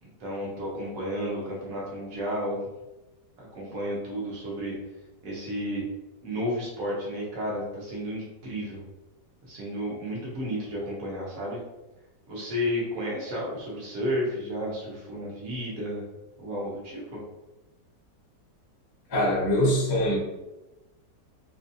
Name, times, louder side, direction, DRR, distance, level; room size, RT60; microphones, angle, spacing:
voice 1, 0.0-2.6 3.4-4.8 5.2-5.8 6.2-8.8 9.4-11.6 12.3-16.0 16.4-17.2, equal, 55° right, -5 dB, 1.4 m, -32 dB
voice 2, 19.1-20.2, left 1 dB, 35° left, -4 dB, 0.4 m, -23 dB
3.2 x 3.0 x 2.7 m, 1.1 s
omnidirectional pair, 1.9 m